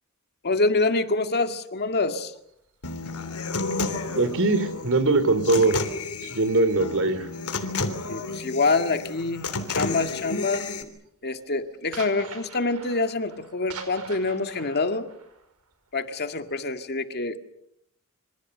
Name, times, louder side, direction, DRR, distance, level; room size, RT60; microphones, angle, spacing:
voice 1, 0.4-2.3 8.1-10.7 11.2-15.1 15.9-17.4, left 3 dB, 50° left, 7 dB, 1.9 m, -26 dB
sound 1, 1.8-5.7 6.0-9.4 9.7-10.1 10.4-16.8, right 5 dB, 90° right, 5.1 m, -46 dB
Human voice / Acoustic guitar, 2.8-10.8, left 3 dB, 80° left, 3.5 m, -31 dB
voice 2, 4.1-5.8 6.2-7.3, right 2 dB, 60° right, 12 dB, 3.2 m, -21 dB
27.0 x 26.0 x 6.7 m, 0.72 s
head